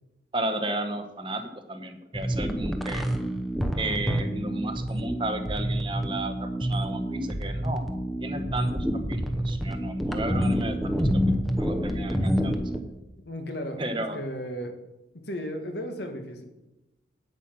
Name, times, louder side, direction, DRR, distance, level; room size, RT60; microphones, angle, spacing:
voice 1, 0.3-3.0 3.7-7.8 8.2-11.2 11.5-12.6 13.8-14.2, right 2 dB, 25° right, 7 dB, 0.9 m, -33 dB
sound 1, 2.1-12.8, equal, ahead, 0.8 m, -28 dB
voice 2, 13.2-14.8 15.2-16.4, equal, 70° left, 5 dB, 1.5 m, -35 dB
9.1 x 8.3 x 6.1 m, 0.98 s
head